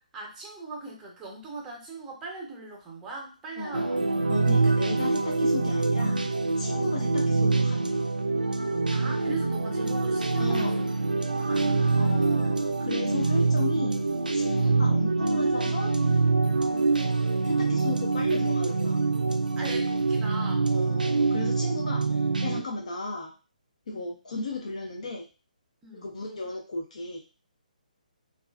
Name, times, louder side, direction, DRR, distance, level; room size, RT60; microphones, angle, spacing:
voice 1, 0.1-4.1 6.7-7.0 8.9-10.9 11.3-12.8 14.6-14.9 16.7-17.0 19.6-20.8 22.6-22.9 23.9-24.1 25.8-26.1, right 3 dB, 10° right, -1 dB, 0.7 m, -41 dB
voice 2, 3.6-4.0 4.3-6.2 6.6-8.0 10.4-10.8 12.0-13.9 14.3-15.9 17.4-19.0 20.7-23.3 23.9-25.3 25.9-27.2, left 2 dB, 50° left, -1 dB, 0.5 m, -35 dB
sound 1, 3.7-22.6, right 3 dB, 75° right, 0.4 m, -25 dB
3.0 x 2.3 x 2.3 m, 0.34 s
figure-of-eight pair, 135°, 5 cm